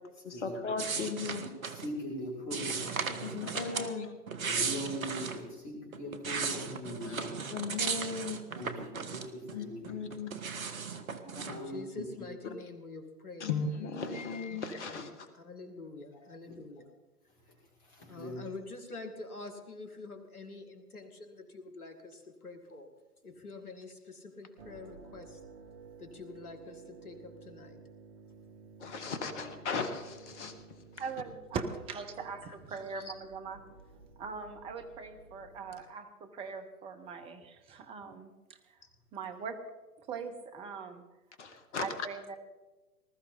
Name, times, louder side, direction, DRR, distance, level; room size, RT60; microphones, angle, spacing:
voice 1, 0.2-1.5 3.2-4.1 7.0-7.2 7.5-8.4 9.5-10.3 13.4-15.3 28.8-30.6 41.4-41.9, left 5 dB, 50° left, 8 dB, 1.8 m, -36 dB
sound 1, 0.8-1.9 2.5-3.9 4.3-5.4 5.9-9.5 9.8-11.6, right 5 dB, 60° right, 1.5 m, -36 dB
voice 2, 1.7-3.8 4.5-7.4 8.5-10.0 11.2-12.0 17.5-17.6 17.8-18.5 29.3-29.4, equal, 25° left, -3 dB, 6.0 m, -41 dB
voice 3, 11.4-14.4 14.6-16.9 18.1-22.9 23.2-25.4 26.0-27.8 32.4-32.6 32.9-33.2 38.8-38.9, left 3 dB, 70° left, 7 dB, 2.2 m, -47 dB
sound 2, 24.6-35.8, right 5 dB, 40° right, 2.1 m, -54 dB
voice 4, 31.0-33.6 34.2-38.8 39.1-39.6 40.1-41.0 41.8-42.4, right 5 dB, 10° right, 6 dB, 0.9 m, -41 dB
20.0 x 13.0 x 4.0 m, 1.2 s
figure-of-eight pair, 120°, 46 cm